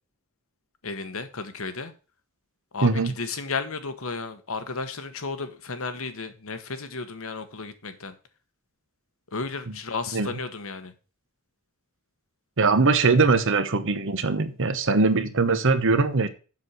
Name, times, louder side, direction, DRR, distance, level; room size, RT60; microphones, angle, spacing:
voice 1, 0.8-1.9 2.7-8.1 9.3-10.9, left 4 dB, 65° left, 1.3 m, -33 dB
voice 2, 2.8-3.1 9.7-9.8 10.1-10.3 12.6-16.3, right 4 dB, 60° right, 1.0 m, -21 dB
7.5 x 6.4 x 5.6 m
head